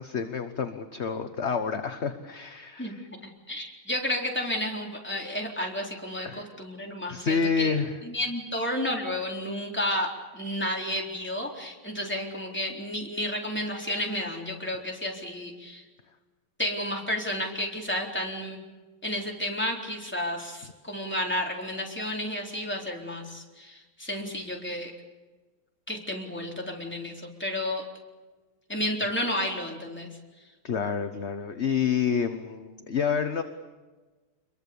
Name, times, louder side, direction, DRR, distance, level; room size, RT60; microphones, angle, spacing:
voice 1, 0.0-3.1 6.2-6.5 7.1-7.9 30.6-33.4, left 6 dB, 40° left, 8 dB, 1.2 m, -28 dB
voice 2, 3.2-7.8 8.0-15.8 16.6-18.6 19.0-24.9 25.9-27.8 28.7-30.1, left 1 dB, 5° left, -1 dB, 4.0 m, -31 dB
27.5 x 22.5 x 7.0 m, 1.3 s
omnidirectional pair, 2.3 m